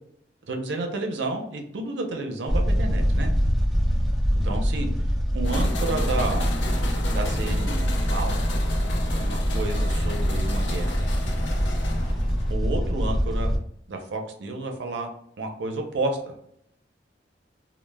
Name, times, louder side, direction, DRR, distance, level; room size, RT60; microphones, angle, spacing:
voice 1, 0.5-3.3 4.4-4.9 5.3-6.5 7.1-8.4 9.1-10.9 12.5-13.5 13.9-15.1 15.4-16.3, right 2 dB, 85° right, 3 dB, 0.5 m, -31 dB
sound 1, 2.5-13.6, equal, ahead, 0.4 m, -24 dB
sound 2, 5.4-12.5, left 2 dB, 85° left, 0.5 m, -34 dB
2.1 x 2.0 x 3.2 m, 0.71 s
head